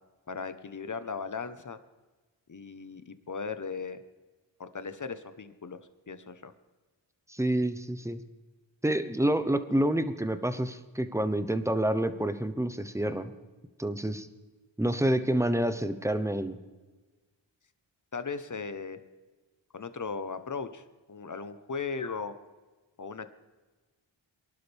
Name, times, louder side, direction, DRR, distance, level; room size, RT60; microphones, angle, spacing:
voice 1, 0.3-1.8 2.5-4.0 4.6-5.8 6.1-6.5 18.1-19.0 19.7-22.3 23.0-23.3, left 5 dB, 40° left, 11 dB, 1.1 m, -37 dB
voice 2, 7.3-8.2 8.8-13.3 13.8-14.3 14.8-16.6, right 1 dB, 5° right, 10 dB, 1.0 m, -28 dB
23.5 x 11.5 x 3.5 m, 1.3 s
wide cardioid pair, 70°, 48 cm